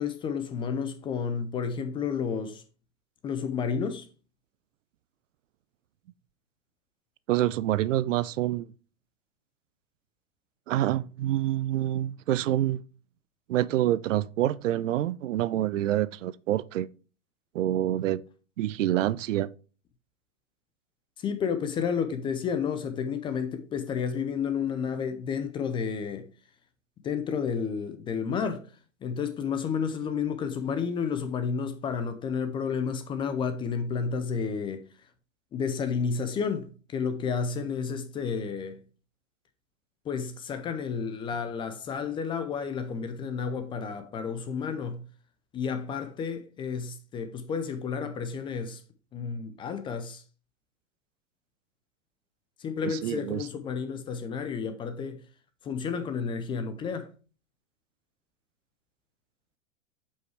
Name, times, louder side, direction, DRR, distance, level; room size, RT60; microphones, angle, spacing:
voice 1, 0.0-2.6 3.2-4.1 21.2-26.3 27.0-28.6 29.0-35.1 35.5-38.8 40.0-45.0 45.5-48.8 49.1-50.2 52.6-55.2 55.6-57.1, left 6 dB, 15° left, 0.4 m, -31 dB
voice 2, 7.3-8.7 10.7-12.8 13.5-16.9 17.5-18.2 18.6-19.5 52.8-53.4, right 13 dB, 75° right, 0.5 m, -27 dB
7.5 x 5.5 x 3.2 m
hypercardioid pair, 125°, 38 cm